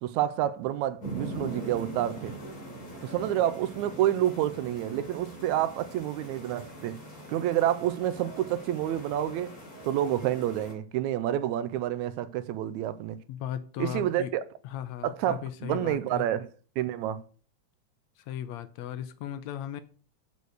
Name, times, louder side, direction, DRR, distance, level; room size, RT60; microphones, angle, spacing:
voice 1, 0.0-2.3 3.0-7.0 7.3-9.5 9.8-13.2 13.8-14.4 15.0-16.5 16.8-17.2, right 12 dB, 85° right, 2.0 m, -28 dB
sound 1, 1.0-10.7, right 2 dB, 30° left, 3.2 m, -42 dB
voice 2, 13.3-14.3 14.6-16.2 18.2-19.8, left 10 dB, 75° left, 1.8 m, -37 dB
6.9 x 6.5 x 6.3 m
omnidirectional pair, 3.4 m